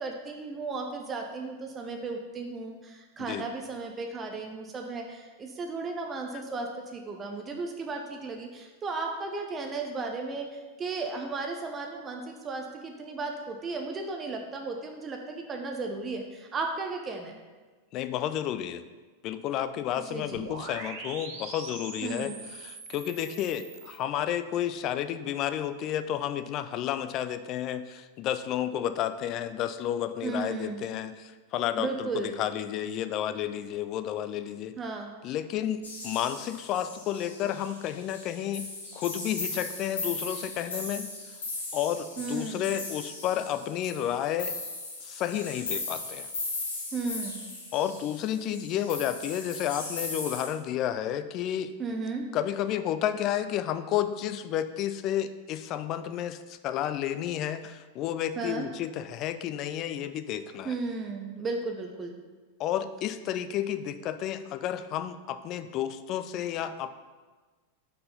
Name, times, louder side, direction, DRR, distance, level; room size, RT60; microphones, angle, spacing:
voice 1, 0.0-17.4 19.9-20.4 22.0-22.4 30.2-30.8 31.8-32.3 34.8-35.1 42.2-42.6 46.9-47.4 51.8-52.3 58.4-58.7 60.6-62.2, right 3 dB, 20° right, 2 dB, 0.7 m, -35 dB
voice 2, 17.9-18.8 19.2-34.8 35.2-38.7 38.9-41.1 41.7-44.5 45.0-46.3 47.7-51.7 52.3-60.8 62.6-66.9, left 10 dB, 35° left, 11 dB, 0.4 m, -31 dB
sound 1, 20.3-24.0, right 4 dB, 50° right, 1.1 m, -42 dB
sound 2, 35.8-50.5, left 2 dB, 70° left, 1.5 m, -38 dB
5.4 x 4.3 x 5.3 m, 1.3 s
figure-of-eight pair, 90°, 0 cm